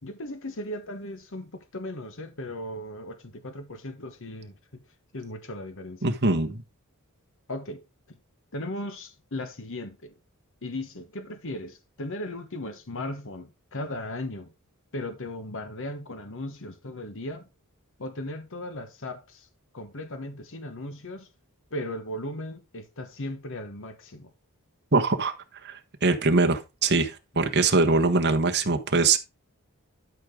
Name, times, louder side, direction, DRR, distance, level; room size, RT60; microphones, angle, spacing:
voice 1, 0.0-4.8 5.1-6.0 7.5-8.2 8.5-10.1 10.6-14.5 14.9-17.4 18.0-19.5 19.7-21.3 21.7-24.3, left 1 dB, 60° left, 1.3 m, -37 dB
voice 2, 6.0-6.6 24.9-25.3 25.6-25.7 26.0-29.2, right 3 dB, 50° right, 1.3 m, -22 dB
12.0 x 5.0 x 3.8 m
head